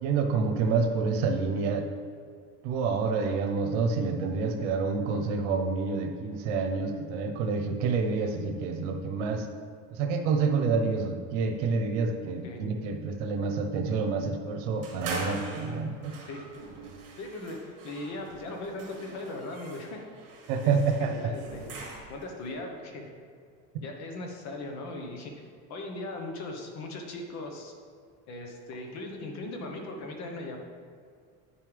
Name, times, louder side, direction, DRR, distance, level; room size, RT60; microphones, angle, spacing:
voice 1, 0.0-1.8 2.6-9.5 9.9-16.1 20.5-21.1, right 4 dB, 75° right, 5 dB, 1.0 m, -28 dB
sound 1, 14.8-22.3, right 3 dB, 45° right, 2.1 m, -42 dB
voice 2, 17.2-20.0 20.6-20.7 21.0-21.7 22.1-23.1 23.8-27.7 28.3-30.6, left 2 dB, 50° left, 2 dB, 1.3 m, -39 dB
9.1 x 7.1 x 3.5 m, 2.1 s
cardioid pair, 145°, 36 cm